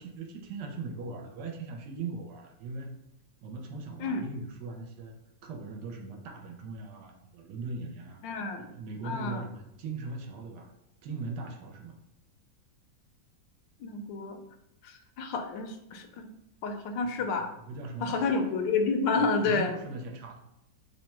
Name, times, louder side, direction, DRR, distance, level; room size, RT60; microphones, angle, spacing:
voice 1, 0.0-2.9 3.4-5.1 5.4-8.2 8.6-10.7 11.0-12.0 17.2-17.3 17.7-18.5 19.2-20.5, right 3 dB, 75° right, 4 dB, 1.2 m, -40 dB
voice 2, 8.2-8.7 9.0-9.4 13.8-14.4 14.8-16.3 16.6-17.5 18.0-19.7, left 4 dB, 85° left, 5 dB, 1.3 m, -29 dB
3.4 x 2.1 x 4.3 m, 0.84 s
omnidirectional pair, 1.9 m